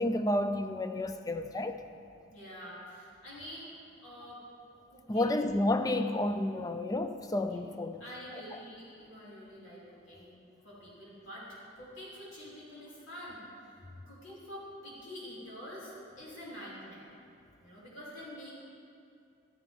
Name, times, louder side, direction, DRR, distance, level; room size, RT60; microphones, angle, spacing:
voice 1, 0.0-1.8 5.1-8.0 8.5-8.6, left 1 dB, 20° left, 8 dB, 0.3 m, -31 dB
voice 2, 2.3-3.7 4.0-4.4 4.9-5.4 7.5-7.6 8.0-10.4 10.6-13.8 14.1-17.0 17.6-18.5, equal, 75° left, -7 dB, 2.9 m, -47 dB
13.0 x 9.4 x 3.5 m, 2.5 s
head